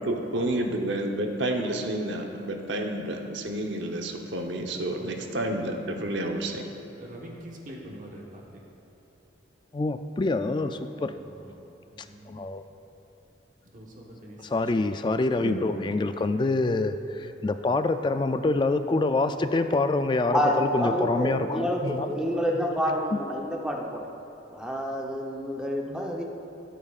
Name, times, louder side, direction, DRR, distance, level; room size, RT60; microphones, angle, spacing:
voice 1, 0.0-6.6 15.4-15.7, right 1 dB, 75° right, 3 dB, 0.9 m, -30 dB
voice 2, 7.0-8.4 10.7-11.6 11.9-12.4 13.7-14.4 14.8-14.9, right 1 dB, 45° right, -2 dB, 1.2 m, -44 dB
voice 3, 9.7-11.1 12.3-12.6 14.4-22.1 22.3-22.4 23.1-23.2, left 2 dB, 25° left, 9 dB, 0.3 m, -26 dB
voice 4, 20.3-24.0 24.5-26.2, equal, 5° right, -1 dB, 0.8 m, -28 dB
17.0 x 8.4 x 2.4 m, 3.0 s
head